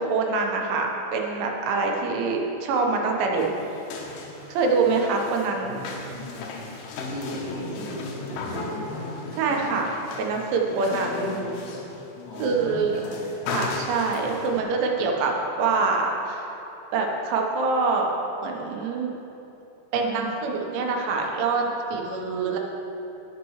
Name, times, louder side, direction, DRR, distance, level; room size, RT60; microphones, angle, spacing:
voice 1, 0.0-3.5 4.5-5.7 9.4-9.9 10.2-11.3 12.4-13.0 13.5-15.3 15.6-16.5 16.9-18.1 18.4-19.1 19.9-22.6, right 4 dB, 85° right, 1 dB, 3.5 m, -25 dB
sound 1, 3.3-14.6, left 3 dB, 75° left, 2.9 m, -36 dB
voice 2, 4.5-4.9 5.2-5.9 6.9-9.9 11.1-11.5 12.2-13.5, equal, 50° left, -9 dB, 3.3 m, -37 dB
18.5 x 6.7 x 3.1 m, 3.0 s
omnidirectional pair, 5.3 m